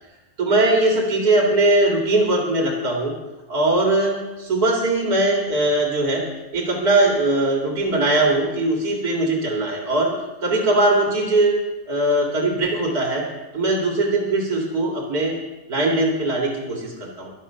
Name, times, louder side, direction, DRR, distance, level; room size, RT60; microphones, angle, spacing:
voice 1, 0.4-3.1 3.5-6.2 6.5-10.1 10.4-11.5 11.9-13.3 13.5-15.4 15.7-17.3, right 2 dB, 90° right, -2 dB, 2.8 m, -20 dB
24.0 x 8.2 x 5.7 m, 1.2 s
omnidirectional pair, 1.6 m